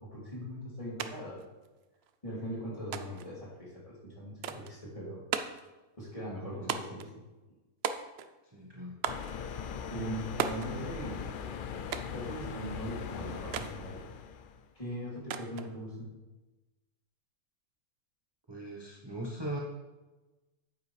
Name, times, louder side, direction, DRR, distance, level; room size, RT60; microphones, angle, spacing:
voice 1, 0.0-1.4 2.2-5.2 6.0-7.1 9.9-11.2 12.0-14.0 14.7-16.1, equal, 25° left, -6 dB, 2.8 m, -40 dB
sound 1, 1.0-1.1 1.4-2.1 2.9-3.3 4.4-4.8 5.3-5.7 6.7-7.1 7.8-8.4 9.0-9.3 10.4-10.7 11.9-12.2 13.5-13.8 15.3-15.7, right 7 dB, 60° right, 0.7 m, -35 dB
voice 2, 8.5-8.9 18.5-19.6, right 1 dB, 20° right, -3 dB, 1.0 m, -39 dB
sound 2, 9.1-14.6, left 7 dB, 75° left, 0.4 m, -40 dB
9.2 x 8.3 x 3.3 m, 1.1 s
omnidirectional pair, 1.5 m